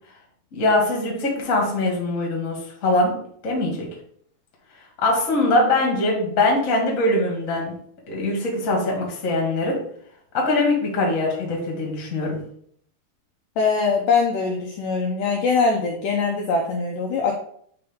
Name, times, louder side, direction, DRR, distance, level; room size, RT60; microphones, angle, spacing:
voice 1, 0.5-3.2 3.4-3.9 5.0-7.7 8.1-9.8 10.3-12.4, left 2 dB, 35° left, -2 dB, 1.3 m, -22 dB
voice 2, 13.6-17.3, left 4 dB, 85° left, 1 dB, 1.9 m, -22 dB
9.4 x 3.4 x 3.7 m, 0.63 s
omnidirectional pair, 4.7 m